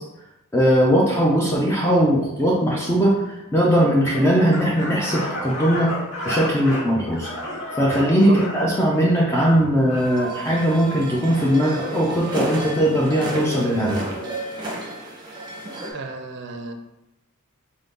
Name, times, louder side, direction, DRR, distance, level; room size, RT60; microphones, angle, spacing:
voice 1, 0.5-5.9 6.3-7.3 7.7-14.1, equal, 10° left, -4 dB, 0.4 m, -19 dB
sound 1, 4.0-10.1, left 1 dB, 60° left, 1.0 m, -32 dB
sound 2, 10.0-15.9, right 1 dB, 20° right, 0.8 m, -32 dB
voice 2, 15.9-16.7, right 3 dB, 55° right, 5 dB, 0.4 m, -33 dB
3.6 x 2.7 x 3.5 m, 0.96 s
head